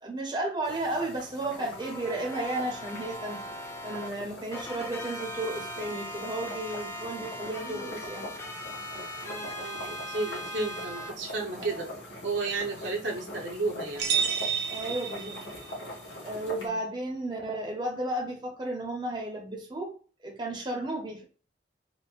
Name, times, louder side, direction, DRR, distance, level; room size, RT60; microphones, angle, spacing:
voice 1, 0.0-3.4 3.8-8.3 11.6-11.9 14.7-15.4 16.2-19.9 20.2-21.2, right 1 dB, 25° right, -1 dB, 0.8 m, -33 dB
sound 1, 0.6-16.7, left 1 dB, 80° left, 1.7 m, -43 dB
sound 2, 1.5-4.1 4.5-11.1, equal, 15° left, 0.5 m, -39 dB
voice 2, 7.5-8.2 9.2-11.9 12.2-14.2 16.5-16.8, right 3 dB, 85° right, 0 dB, 1.0 m, -34 dB
sound 3, 14.0-15.8, right 7 dB, 60° right, 0.6 m, -30 dB
4.2 x 2.2 x 2.4 m, 0.38 s
head